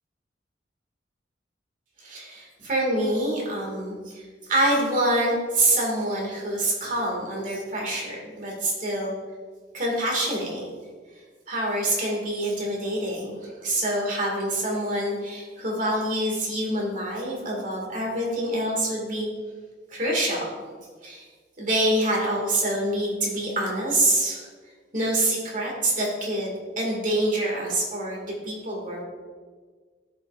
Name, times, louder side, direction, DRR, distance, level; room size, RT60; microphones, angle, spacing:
voice 1, 2.0-4.2 4.5-9.1 9.7-10.7 11.5-19.3 19.9-20.5 21.0-21.2 21.6-24.5 24.9-29.0, right 1 dB, 45° right, -2 dB, 2.2 m, -26 dB
12.5 x 5.5 x 2.6 m, 1.5 s
head